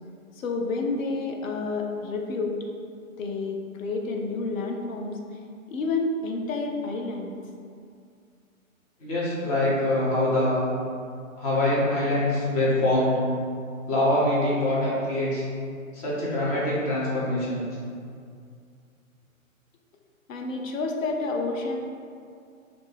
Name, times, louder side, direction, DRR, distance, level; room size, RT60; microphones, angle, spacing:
voice 1, 0.4-2.7 3.2-5.2 5.7-7.3 20.3-21.8, left 3 dB, 70° left, 2 dB, 0.5 m, -29 dB
voice 2, 9.0-10.6 11.4-13.2 13.9-15.4 15.9-17.7, left 1 dB, 30° left, -7 dB, 0.7 m, -24 dB
2.6 x 2.1 x 3.2 m, 2.3 s
figure-of-eight pair, 120°, 41 cm